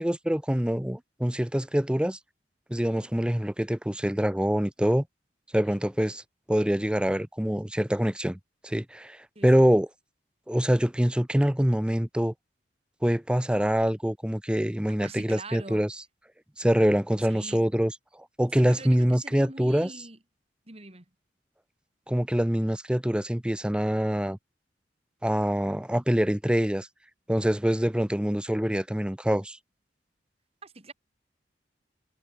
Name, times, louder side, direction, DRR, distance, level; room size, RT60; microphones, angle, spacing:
voice 1, 0.0-2.2 2.7-5.0 5.5-6.2 6.5-8.4 8.6-9.9 10.5-12.3 13.0-15.9 16.6-17.9 18.4-19.9 22.1-24.4 25.2-26.9 27.3-29.6, equal, 5° right, 0.6 m, -25 dB
voice 2, 9.3-9.7 15.0-15.8 17.2-17.7 18.5-20.2 20.7-21.0 30.6-30.9, right 2 dB, 35° right, 2.7 m, -44 dB
head